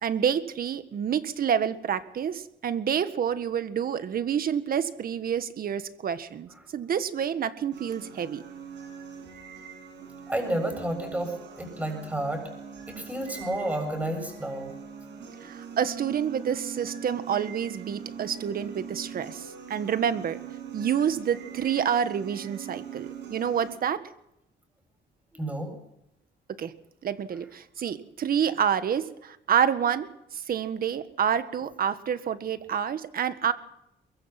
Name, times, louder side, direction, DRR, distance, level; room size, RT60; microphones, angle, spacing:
voice 1, 0.0-8.4 15.4-20.4 20.7-24.0 26.6-26.7 27.0-33.5, right 8 dB, 55° right, 12 dB, 1.7 m, -28 dB
sound 1, 7.7-23.7, right 7 dB, 85° right, 7.1 m, -42 dB
voice 2, 10.3-12.4 12.9-14.8 25.3-25.7, right 1 dB, 10° right, 4 dB, 7.5 m, -31 dB
23.0 x 23.0 x 6.0 m, 0.83 s
cardioid pair, 130°, 18 cm